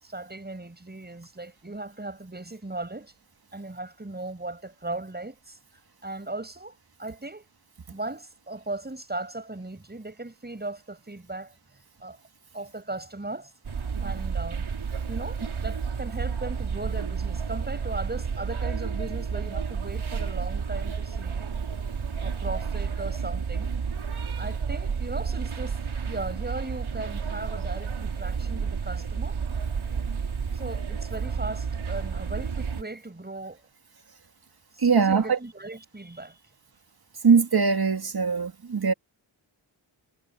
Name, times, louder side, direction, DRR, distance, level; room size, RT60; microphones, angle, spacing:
voice 1, 0.0-3.1 3.5-5.6 6.0-7.5 7.9-12.2 12.5-13.5 14.0-14.6 15.1-21.5 22.2-23.7 24.4-25.8 26.1-29.4 30.5-33.6 34.7-36.4, right 2 dB, 20° right, 7.9 m, -37 dB
sound 1, 13.6-32.8, right 6 dB, 75° right, 5.3 m, -31 dB
voice 2, 34.8-35.4 37.2-38.9, right 5 dB, 50° right, 2.2 m, -21 dB
wide cardioid pair, 105°, 48 cm